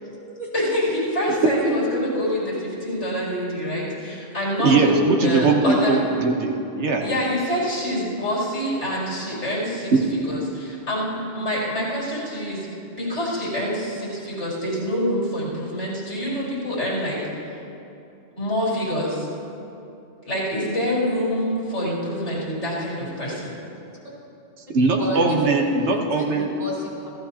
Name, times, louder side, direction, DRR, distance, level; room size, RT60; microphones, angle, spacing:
voice 1, 0.0-0.5 25.0-25.4 25.9-27.1, equal, 40° right, -6 dB, 4.7 m, -32 dB
voice 2, 0.5-5.9 7.0-9.9 10.3-12.7 13.0-17.2 18.4-19.3 20.2-23.5, equal, 80° left, -8 dB, 4.9 m, -26 dB
voice 3, 4.6-7.0 9.9-10.0 24.7-26.5, right 3 dB, 75° right, 1 dB, 1.4 m, -20 dB
28.5 x 15.5 x 2.9 m, 2.8 s
omnidirectional pair, 1.2 m